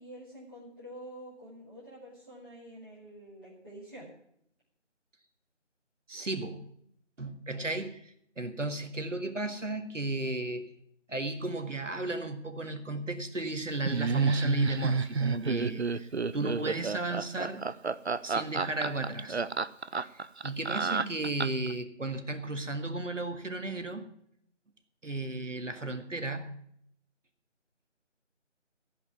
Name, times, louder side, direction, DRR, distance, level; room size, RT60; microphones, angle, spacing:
voice 1, 0.0-4.1, equal, 10° right, -14 dB, 2.0 m, -47 dB
voice 2, 6.1-6.6 7.2-10.7 11.1-17.7 18.2-19.4 19.9-24.1 25.0-26.5, right 2 dB, 85° right, 7 dB, 1.9 m, -34 dB
Laughter, 13.9-21.7, right 5 dB, 60° right, 0.6 m, -30 dB
15.5 x 5.5 x 9.4 m, 0.69 s
figure-of-eight pair, 170°, 37 cm